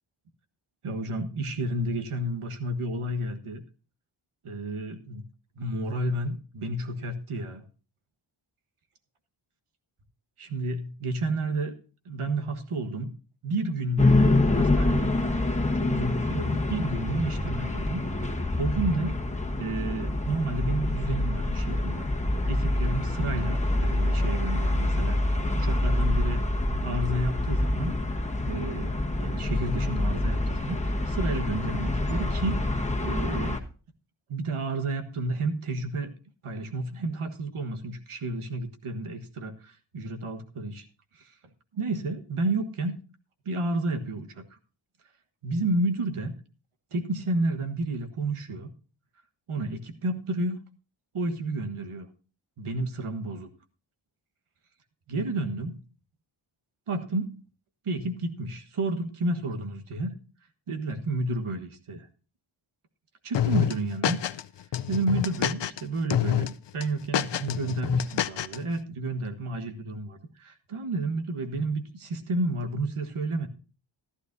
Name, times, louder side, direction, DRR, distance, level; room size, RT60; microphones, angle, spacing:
voice 1, 0.8-3.6 4.4-5.2 5.6-7.6 10.4-11.7 12.0-13.1 13.4-19.2 19.6-22.1 22.5-26.4 26.8-28.0 28.4-28.9 29.2-32.7 33.0-33.6 34.3-36.1 36.4-40.9 41.1-41.3 41.7-43.0 43.4-44.6 45.4-46.3 46.9-48.7 49.5-50.6 51.1-52.1 52.6-53.5 55.1-55.8 56.9-57.4 57.8-60.2 60.7-62.1 63.2-64.2 64.9-73.5, right 2 dB, 85° right, 7 dB, 1.5 m, -31 dB
sound 1, 14.0-33.6, left 2 dB, 15° left, 1.4 m, -26 dB
sound 2, 63.3-64.4 64.7-65.8 66.1-66.5 66.8-68.6, left 11 dB, 60° left, 0.6 m, -27 dB
14.5 x 11.5 x 2.7 m, 0.36 s
cardioid pair, 45°, 49 cm